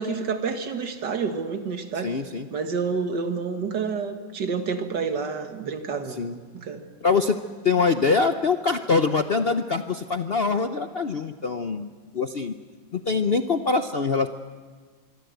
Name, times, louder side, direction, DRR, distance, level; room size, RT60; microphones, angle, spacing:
voice 1, 0.0-2.1 2.5-6.2 6.5-6.8 7.8-7.9, right 5 dB, 60° right, 7 dB, 2.3 m, -29 dB
voice 2, 2.0-2.5 6.2-6.4 7.0-11.9 12.1-12.6 12.9-14.3, left 4 dB, 55° left, 8 dB, 0.6 m, -24 dB
24.5 x 23.5 x 8.0 m, 1.5 s
omnidirectional pair, 2.1 m